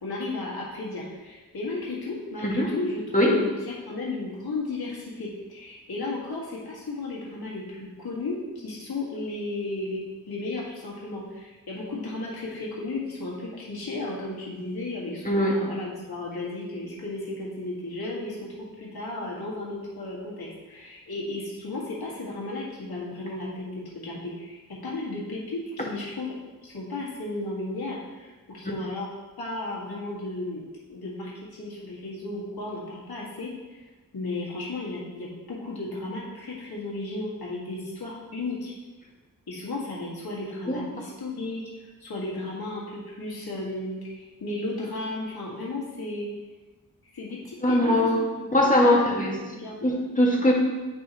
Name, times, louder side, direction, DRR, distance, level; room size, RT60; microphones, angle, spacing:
voice 1, 0.0-3.5 3.9-10.0 10.3-26.3 26.6-29.1 29.4-30.6 30.9-33.8 34.1-38.7 39.5-41.6 42.0-46.3 47.1-47.9 48.8-49.9, left 2 dB, 90° left, -5 dB, 1.9 m, -34 dB
voice 2, 47.6-48.2 48.5-49.4 49.8-50.5, left 1 dB, 20° left, -3 dB, 1.8 m, -21 dB
9.2 x 5.4 x 3.0 m, 1.2 s
cardioid pair, 55°, 36 cm